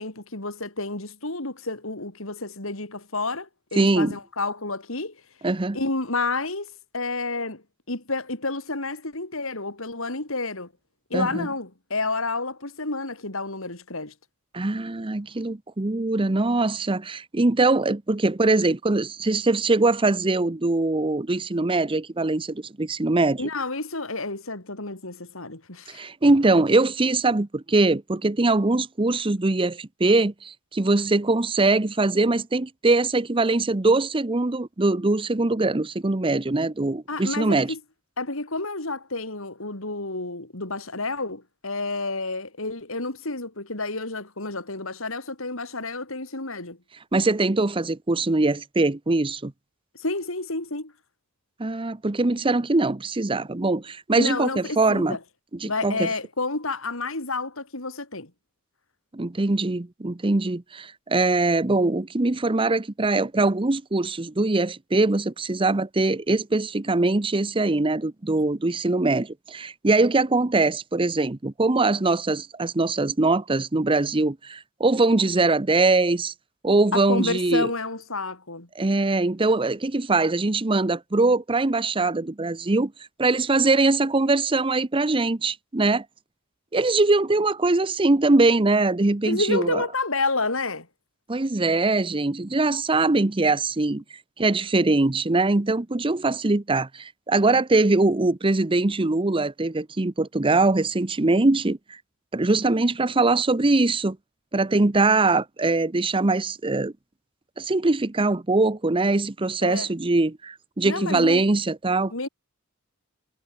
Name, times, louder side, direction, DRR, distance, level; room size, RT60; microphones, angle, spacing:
voice 1, 0.0-5.2 5.7-10.7 11.1-14.1 23.4-26.1 37.1-37.8 38.2-46.8 49.9-50.9 54.2-55.2 55.7-58.3 76.9-78.7 89.3-90.9 109.6-109.9 110.8-111.4 112.1-112.3, left 3 dB, 65° left, 3.9 m, -30 dB
voice 2, 3.8-4.2 5.4-5.8 11.1-11.5 14.5-23.4 25.9-37.7 47.1-49.5 51.6-55.2 55.6-56.1 59.1-76.3 76.6-77.7 78.8-82.9 83.2-86.1 86.7-89.8 91.3-94.0 94.4-102.0 102.3-104.2 104.5-106.9 107.6-112.3, right 2 dB, 25° right, 0.7 m, -22 dB
head